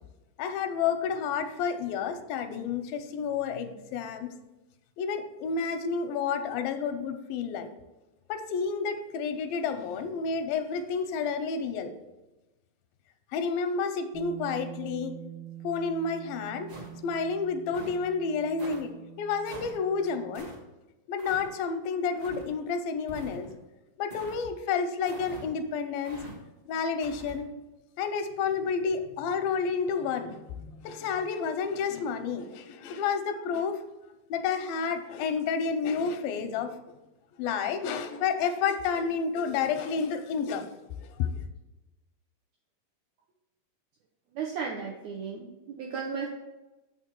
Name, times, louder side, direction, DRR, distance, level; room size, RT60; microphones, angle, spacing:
voice 1, 0.4-4.3 5.0-7.7 8.3-11.9 13.3-15.1 15.6-16.7 17.0-18.9 19.2-20.5 21.1-23.5 24.0-26.2 26.7-27.5 28.0-33.8 34.3-36.7 37.4-40.7 41.2-41.3, left 5 dB, 90° left, 7 dB, 2.4 m, -30 dB
Bass guitar, 14.1-20.4, right 12 dB, 65° right, 1.4 m, -45 dB
sound 1, 16.7-17.2 17.7-18.0 18.6-18.8 19.4-19.8 20.3-20.6 21.2-21.5 22.2-22.5 23.1-23.6 24.1-24.4 25.0-25.5 26.0-26.3 27.0-27.4, equal, 35° right, 1.0 m, -45 dB
voice 2, 44.3-46.3, right 5 dB, 80° right, -1 dB, 1.6 m, -35 dB
7.1 x 5.9 x 4.5 m, 1.0 s
omnidirectional pair, 4.1 m